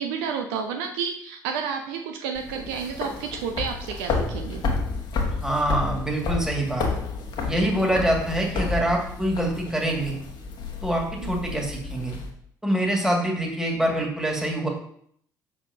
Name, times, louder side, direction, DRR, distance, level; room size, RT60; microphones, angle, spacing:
voice 1, 0.0-4.7 11.2-11.5, right 6 dB, 65° right, 4 dB, 0.6 m, -31 dB
sound 1, 2.4-12.3, left 4 dB, 50° left, 1.2 m, -31 dB
voice 2, 5.4-6.9 7.4-10.2 10.8-12.2 12.6-14.7, right 1 dB, 5° right, -1 dB, 2.1 m, -25 dB
6.2 x 6.0 x 2.8 m, 0.65 s
figure-of-eight pair, 50°, 10 cm